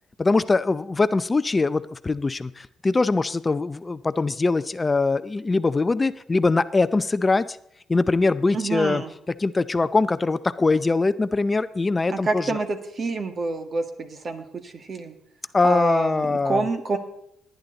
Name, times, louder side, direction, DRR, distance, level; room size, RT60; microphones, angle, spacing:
voice 1, 0.2-7.5 7.9-9.0 9.4-12.6 15.5-16.6, left 3 dB, 25° left, 14 dB, 0.6 m, -22 dB
voice 2, 8.5-9.1 12.1-15.1 15.6-17.0, right 3 dB, 45° right, 7 dB, 1.9 m, -27 dB
18.5 x 10.5 x 4.0 m, 0.74 s
cardioid pair, 85°, 0 cm